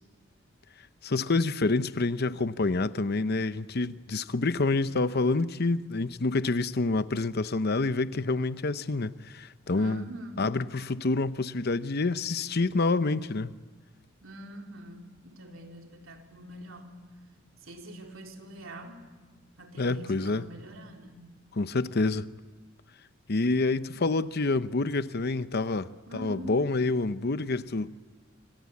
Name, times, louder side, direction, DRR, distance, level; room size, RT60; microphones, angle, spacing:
voice 1, 1.0-10.0 10.4-13.5 19.8-20.4 21.5-22.3 23.3-27.9, left 3 dB, 50° left, 0.8 m, -27 dB
voice 2, 9.7-10.5 14.2-17.0 17.6-19.1 19.6-21.4 26.1-26.6, equal, 80° right, 3.8 m, -44 dB
26.5 x 26.0 x 8.5 m
head